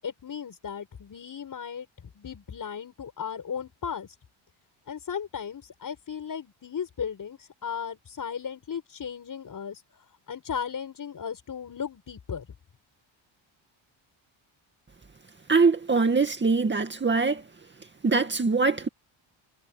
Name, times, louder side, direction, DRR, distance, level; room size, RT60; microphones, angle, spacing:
voice 1, 0.0-1.9 2.1-4.1 4.9-9.8 10.3-12.5, left 7 dB, 40° left, 7.2 m, -36 dB
voice 2, 15.5-17.4 18.0-18.9, right 4 dB, 20° right, 2.2 m, -23 dB
cardioid pair, 145°, 48 cm